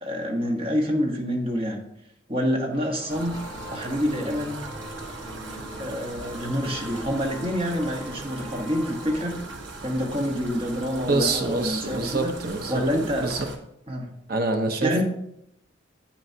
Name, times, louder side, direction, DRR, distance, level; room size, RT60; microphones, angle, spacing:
voice 1, 0.0-1.8 2.3-4.6 5.8-9.4 9.8-12.3 12.7-13.5 13.9-14.1 14.8-15.0, equal, 30° right, 1 dB, 1.3 m, -27 dB
sound 1, 2.7-9.4, equal, 20° left, 1.4 m, -41 dB
sound 2, 3.1-13.6, right 2 dB, 70° right, 1.2 m, -39 dB
voice 2, 11.1-13.4 14.3-15.0, right 2 dB, 50° right, 5 dB, 0.9 m, -26 dB
9.2 x 8.6 x 2.8 m, 0.77 s
head